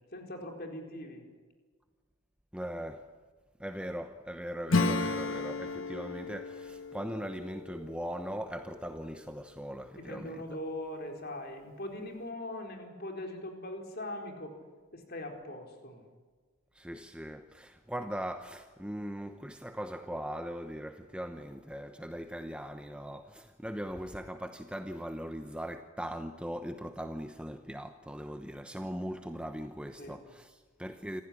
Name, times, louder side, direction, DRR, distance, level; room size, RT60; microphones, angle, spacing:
voice 1, 0.1-1.2 10.0-14.6 14.9-16.0 30.0-30.2, left 1 dB, 45° left, 4.4 m, -41 dB
voice 2, 2.5-3.1 3.6-10.5 16.7-31.2, equal, 5° right, 0.9 m, -40 dB
Acoustic guitar / Strum, 4.7-9.0, left 3 dB, 65° left, 1.5 m, -33 dB
27.5 x 15.5 x 10.0 m
head